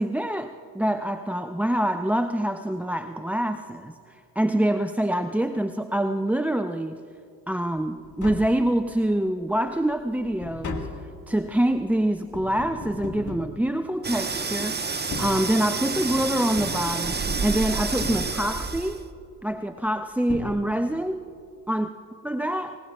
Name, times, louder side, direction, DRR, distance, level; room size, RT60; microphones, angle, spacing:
voice 1, 0.0-7.0 7.5-10.9 11.3-19.1 19.4-21.3 21.7-21.9 22.2-22.8, right 1 dB, 5° right, 9 dB, 0.4 m, -26 dB
Tap, 8.0-9.2 9.6-14.3 14.9-16.0 16.6-17.5 18.0-18.8 19.9-20.0 20.3-21.1 21.4-21.5, left 3 dB, 40° left, 1.8 m, -38 dB
sound 1, 14.0-19.1, right 4 dB, 20° right, 1.1 m, -29 dB
23.5 x 19.5 x 2.4 m, 2.6 s
hypercardioid pair, 50°, 45 cm